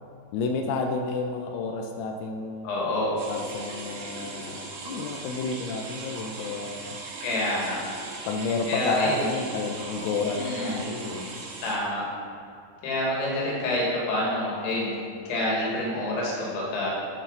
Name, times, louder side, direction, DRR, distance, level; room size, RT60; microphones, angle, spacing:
voice 1, 0.3-2.7 3.3-7.0 8.3-11.4, left 4 dB, 90° left, 3 dB, 3.3 m, -31 dB
voice 2, 2.6-3.2 7.2-7.8 8.7-9.2 10.4-10.8 11.6-12.0 12.8-16.9, left 1 dB, 60° left, -5 dB, 3.6 m, -27 dB
sound 1, 3.2-11.8, right 3 dB, 85° right, 4.3 m, -39 dB
12.0 x 6.2 x 4.1 m, 2.3 s
omnidirectional pair, 6.0 m